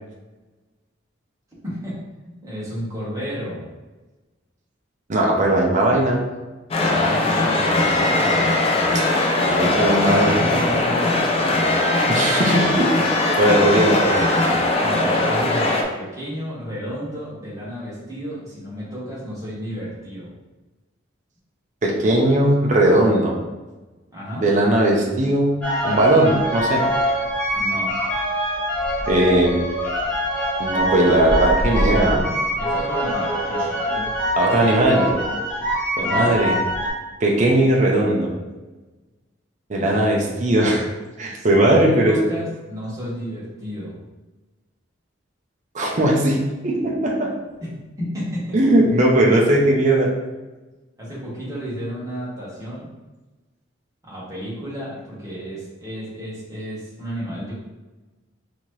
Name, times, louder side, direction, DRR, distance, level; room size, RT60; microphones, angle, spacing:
voice 1, 1.6-2.0 2.2-3.6 6.7-8.6 10.3-11.6 14.8-20.4 24.1-24.5 27.5-28.0 32.6-33.8 36.0-36.3 39.8-39.9 41.3-44.0 47.6-48.6 51.0-52.9 54.0-57.5, equal, 20° right, -7 dB, 1.3 m, -32 dB
voice 2, 5.1-6.2 9.5-10.4 12.1-12.9 13.2-14.2 21.8-23.3 24.4-25.5 25.8-26.8 29.1-29.6 30.6-32.2 34.4-35.1 36.0-36.6 37.2-38.3 39.7-40.9 41.2-42.1 45.7-46.4 46.6-47.3 48.5-50.1, right 1 dB, 40° right, -1 dB, 0.6 m, -18 dB
sound 1, 6.7-15.8, left 2 dB, 30° left, 0.4 m, -20 dB
sound 2, 25.6-36.9, equal, 5° left, 1.2 m, -24 dB
4.1 x 2.9 x 3.1 m, 1.2 s
head